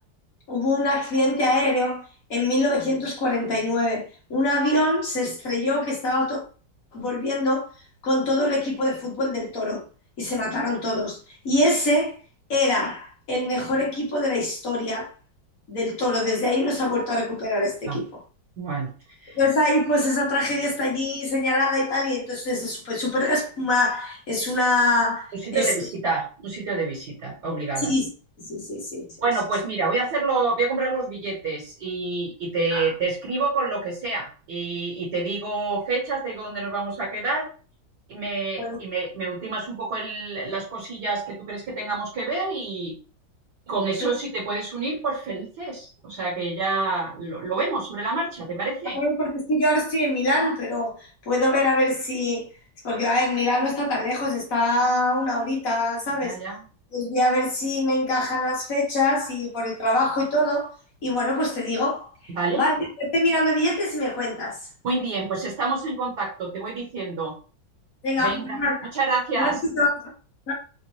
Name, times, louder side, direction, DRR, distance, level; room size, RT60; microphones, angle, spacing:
voice 1, 0.5-4.0 4.3-6.4 6.9-7.7 8.0-9.8 10.2-11.2 11.4-12.1 12.5-15.1 15.7-18.0 19.3-25.7 27.8-28.1 28.4-29.0 32.7-32.9 38.6-38.8 48.9-52.4 52.8-56.4 56.9-60.7 61.0-64.6 68.0-68.9 69.3-70.1 70.5-70.6, left 1 dB, 50° left, 1.6 m, -24 dB
voice 2, 18.6-18.9 19.2-19.4 25.3-27.9 29.2-37.5 38.1-43.0 43.7-49.0 56.2-56.6 62.3-62.7 64.8-67.4 68.2-68.6 68.9-69.6, right 3 dB, 60° right, 1.9 m, -28 dB
4.2 x 2.5 x 3.1 m
omnidirectional pair, 2.1 m